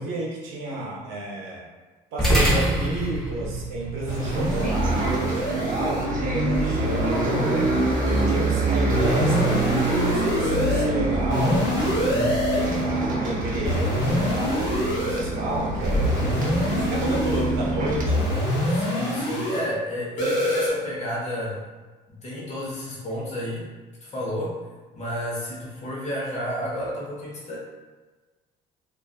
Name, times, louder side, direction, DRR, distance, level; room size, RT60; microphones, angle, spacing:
voice 1, 0.0-1.6 2.1-7.5 8.0-11.7 12.5-16.1 16.7-18.3, right 1 dB, 80° right, -3 dB, 0.7 m, -31 dB
sound 1, 2.2-10.8, right 1 dB, ahead, 0.7 m, -30 dB
sound 2, 4.1-6.0 6.5-8.5 8.9-10.9 11.3-12.9 13.6-15.2 15.8-17.5 18.0-19.6 20.2-20.7, equal, 70° left, 0.9 m, -26 dB
Bus, 4.2-18.0, right 2 dB, 45° right, 0.6 m, -25 dB
voice 2, 8.0-8.4 12.0-12.4 18.7-21.6 22.2-23.7 24.0-24.6 24.9-27.6, equal, 35° left, -5 dB, 0.9 m, -31 dB
2.4 x 2.4 x 2.3 m, 1.3 s
supercardioid pair, 70°, 20 cm